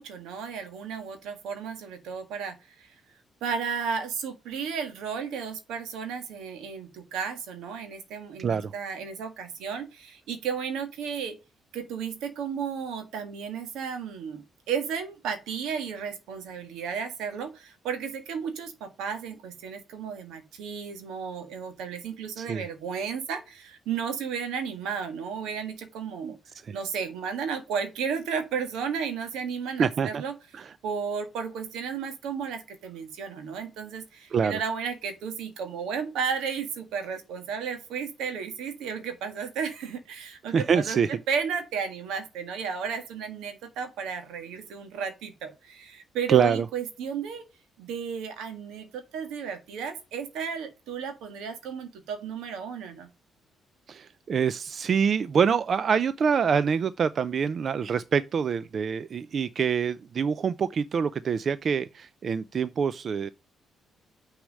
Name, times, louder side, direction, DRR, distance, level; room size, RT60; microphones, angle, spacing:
voice 1, 0.0-2.9 3.4-11.4 11.7-26.4 26.7-30.3 30.8-47.4 47.8-53.1, right 6 dB, 90° right, 1.6 m, -33 dB
voice 2, 8.4-8.7 22.4-22.6 26.2-26.3 26.6-26.8 29.8-30.2 30.5-30.7 34.3-34.6 40.5-41.1 46.3-46.7 53.9-63.3, right 6 dB, 50° right, 0.4 m, -25 dB
6.2 x 4.9 x 6.4 m
cardioid pair, 90°, 0 cm